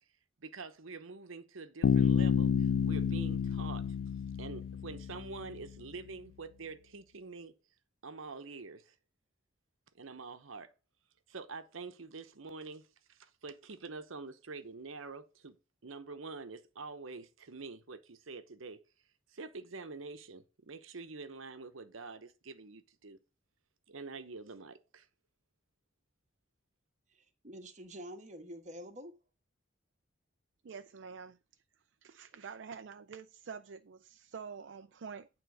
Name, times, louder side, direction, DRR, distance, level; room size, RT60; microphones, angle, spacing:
voice 1, 0.4-4.0 4.4-7.6 8.0-8.9 9.9-10.7 11.3-15.6 15.8-18.8 19.3-23.2 23.9-25.1, right 4 dB, 85° right, 0.9 m, -46 dB
Bass guitar, 1.8-5.6, left 7 dB, 80° left, 0.3 m, -30 dB
voice 2, 27.1-29.1, equal, 35° right, 1.4 m, -47 dB
voice 3, 30.6-31.4 32.0-35.3, right 6 dB, 60° right, 0.4 m, -47 dB
9.2 x 3.8 x 6.2 m
head